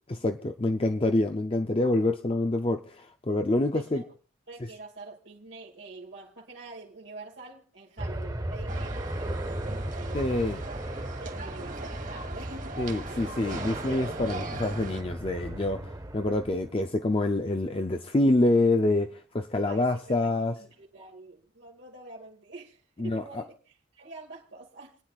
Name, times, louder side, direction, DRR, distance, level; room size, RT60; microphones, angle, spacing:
voice 1, 0.1-4.0 10.1-10.6 12.8-20.5 23.0-23.4, left 2 dB, 30° left, 0.5 m, -26 dB
voice 2, 3.7-4.1 4.5-10.8 11.2-13.3 19.7-25.0, right 3 dB, 70° right, 2.1 m, -46 dB
sound 1, 8.0-16.7, right 1 dB, 20° right, 0.8 m, -36 dB
sound 2, 8.7-15.0, right 3 dB, 40° right, 1.5 m, -40 dB
29.0 x 9.8 x 2.4 m
head